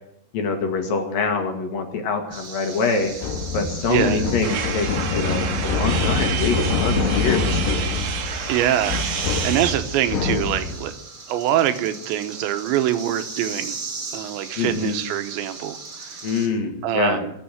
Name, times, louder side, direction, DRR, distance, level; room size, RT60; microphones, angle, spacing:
voice 1, 0.3-3.1 3.5-8.0 14.6-15.0 16.2-17.2, left 4 dB, 60° left, 4 dB, 3.0 m, -25 dB
sound 1, 2.3-16.5, right 4 dB, 35° right, 2.8 m, -37 dB
sound 2, 3.2-10.9, left 4 dB, 80° left, 3.4 m, -25 dB
voice 2, 3.9-4.2 8.5-10.9 11.3-13.8 14.1-16.2 16.8-17.3, right 11 dB, 85° right, 9 dB, 3.2 m, -24 dB
sound 3, 4.4-9.7, right 8 dB, 60° right, 2.9 m, -29 dB
21.5 x 7.2 x 9.1 m, 0.80 s
omnidirectional pair, 5.2 m